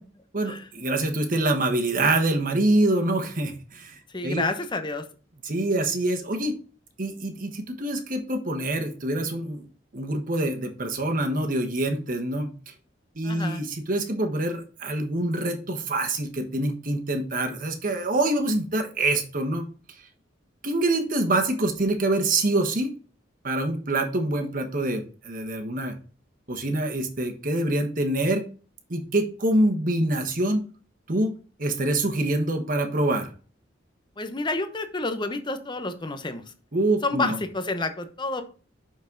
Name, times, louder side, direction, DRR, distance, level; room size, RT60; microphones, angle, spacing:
voice 1, 0.3-4.5 5.4-6.5 7.0-9.7 9.9-12.5 13.1-19.6 20.6-22.9 23.4-25.9 26.5-28.4 28.9-30.6 31.1-31.3 31.6-33.3 36.7-37.4, right 2 dB, 45° right, 4 dB, 1.3 m, -25 dB
voice 2, 4.1-5.0 13.2-13.6 34.2-36.4 37.0-38.4, left 3 dB, 25° left, 8 dB, 0.9 m, -29 dB
6.3 x 6.0 x 3.9 m, 0.38 s
head